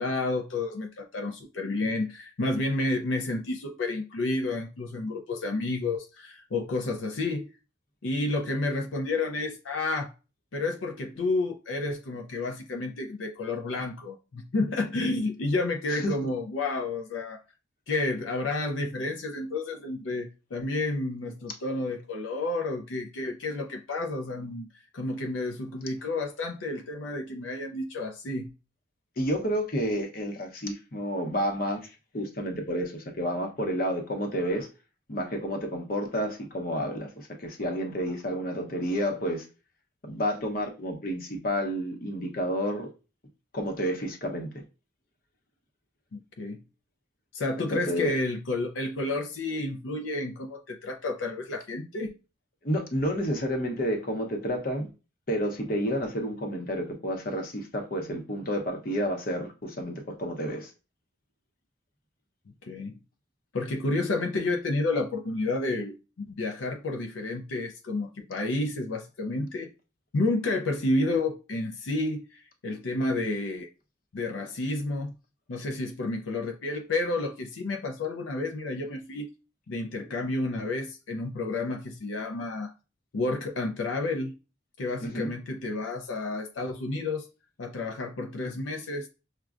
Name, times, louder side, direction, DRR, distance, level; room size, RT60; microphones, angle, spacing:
voice 1, 0.0-7.5 8.0-10.1 10.5-17.4 17.9-28.5 46.1-46.6 47.3-52.1 62.6-63.0 63.5-69.7 70.1-73.7 74.1-75.1 75.5-79.3 79.7-82.7 83.1-84.3 84.8-87.3 87.6-89.1, left 2 dB, 85° left, 0.5 m, -30 dB
voice 2, 29.2-34.7 35.1-39.5 40.0-42.9 43.5-44.5 47.6-48.2 52.6-54.9 55.3-60.7 85.0-85.3, equal, 50° left, 0.8 m, -30 dB
6.0 x 2.2 x 2.4 m
head